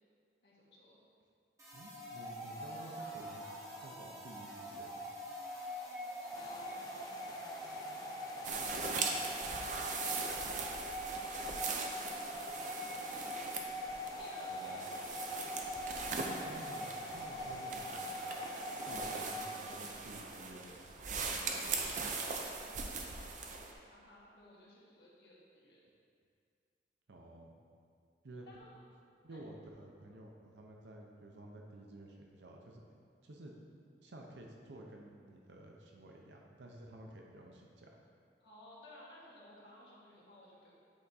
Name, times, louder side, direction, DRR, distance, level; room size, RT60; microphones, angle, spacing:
voice 1, 0.4-1.0 2.2-3.7 6.1-7.7 8.6-9.5 10.7-12.0 12.3-14.9 18.9-19.2 19.6-19.9 20.9-25.8 28.5-28.8 29.3-29.4 38.4-40.8, left 1 dB, 75° left, -5 dB, 1.3 m, -58 dB
sound 1, 1.6-19.8, equal, 20° right, 1.0 m, -43 dB
voice 2, 1.7-3.5 3.8-5.1 14.5-14.9 16.2-18.2 18.8-20.8 21.1-22.1 27.1-27.6 28.2-28.5 29.2-32.8 33.2-33.5 34.0-37.9, right 1 dB, 85° right, 0 dB, 0.6 m, -52 dB
sound 2, 6.3-19.6, left 2 dB, 20° left, 0.4 m, -53 dB
sound 3, 8.4-23.7, right 4 dB, 45° right, 0.5 m, -40 dB
8.1 x 3.5 x 4.1 m, 2.3 s
head